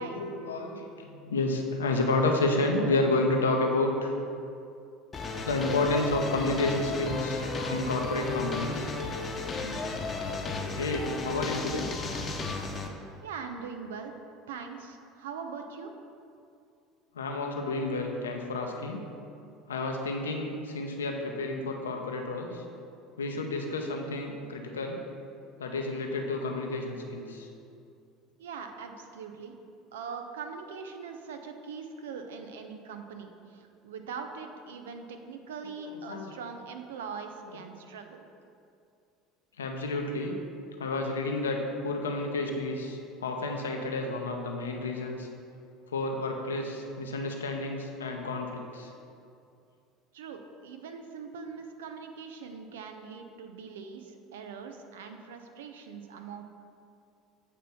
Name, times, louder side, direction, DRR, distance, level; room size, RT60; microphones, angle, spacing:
voice 1, 0.0-4.1 5.4-7.4 7.7-8.9 10.7-11.9 17.1-19.0 19.7-22.6 23.2-25.0 25.6-27.5 35.6-36.3 39.6-40.4 40.8-45.3 45.9-48.9, left 2 dB, 90° left, 2 dB, 0.7 m, -30 dB
sound 1, 5.1-12.9, left 3 dB, 30° left, 0.8 m, -34 dB
voice 2, 13.2-14.1 14.5-15.9 28.4-29.6 29.9-38.3 50.1-56.5, right 5 dB, 80° right, 6 dB, 0.6 m, -42 dB
8.2 x 3.0 x 5.6 m, 2.5 s
hypercardioid pair, 75°, 0 cm